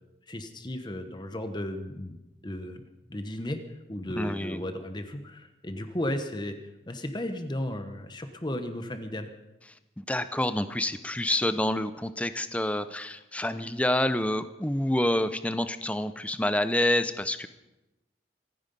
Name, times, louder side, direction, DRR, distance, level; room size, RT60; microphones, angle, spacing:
voice 1, 0.3-2.2 2.4-2.8 3.1-3.6 3.9-6.6 6.9-9.3, left 1 dB, 25° left, 7 dB, 1.0 m, -34 dB
voice 2, 4.2-4.6 10.0-17.5, left 1 dB, 5° left, 11 dB, 0.6 m, -28 dB
26.5 x 9.5 x 5.4 m, 1.0 s
head